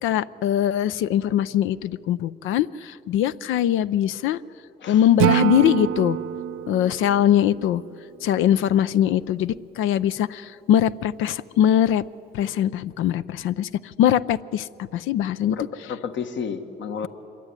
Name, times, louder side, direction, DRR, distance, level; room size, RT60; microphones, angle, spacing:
voice 1, 0.0-4.4 4.9-6.2 6.6-7.8 8.2-12.0 12.3-15.5, left 11 dB, 85° left, 15 dB, 0.5 m, -22 dB
Acoustic guitar / Strum, 5.2-8.3, right 12 dB, 90° right, 0.7 m, -26 dB
voice 2, 15.5-17.1, left 6 dB, 70° left, 8 dB, 1.5 m, -31 dB
25.0 x 22.0 x 9.8 m, 2.8 s
cardioid pair, 90°, 20 cm